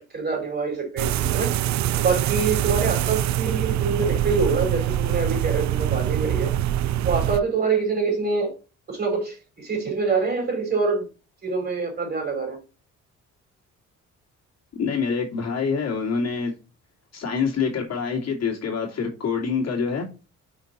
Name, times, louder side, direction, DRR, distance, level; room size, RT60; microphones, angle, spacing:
voice 1, 0.0-1.5 1.9-6.5 7.0-8.5 8.9-11.0 11.4-12.6, right 4 dB, 35° right, 4.1 m, -25 dB
sound 1, 1.0-7.4, right 12 dB, 65° right, 0.5 m, -24 dB
voice 2, 14.8-16.5 17.1-20.1, left 5 dB, 60° left, 2.7 m, -26 dB
6.1 x 4.4 x 4.1 m
cardioid pair, 90°, 30 cm